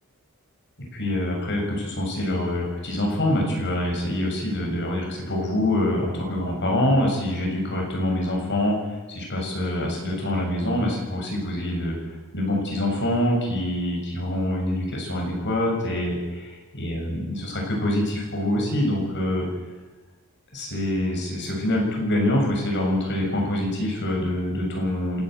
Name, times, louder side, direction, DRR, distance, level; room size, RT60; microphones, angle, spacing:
voice 1, 0.9-19.5 20.5-25.2, left 1 dB, 55° left, 0 dB, 7.1 m, -25 dB
27.5 x 13.0 x 9.3 m, 1.2 s
head